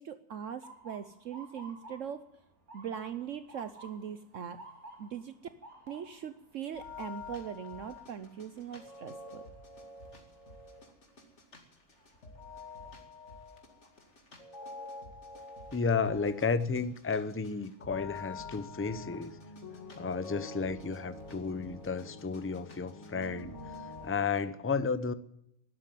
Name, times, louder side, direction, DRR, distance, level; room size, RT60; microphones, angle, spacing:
voice 1, 0.0-2.2 2.7-4.6 5.0-5.3 5.9-9.4, right 8 dB, 65° right, 11 dB, 1.1 m, -41 dB
Motor vehicle (road) / Siren, 0.6-12.5 13.0-13.4 14.2-14.5 16.4-16.6 17.1-17.2 17.6-18.3, right 2 dB, 90° right, 4.5 m, -55 dB
sound 1, 6.7-24.1, left 3 dB, 50° left, 2.6 m, -47 dB
voice 2, 15.7-19.4 20.0-23.5 24.0-25.1, left 5 dB, 20° left, 13 dB, 0.3 m, -32 dB
12.5 x 11.5 x 9.2 m, 0.75 s
omnidirectional pair, 1.5 m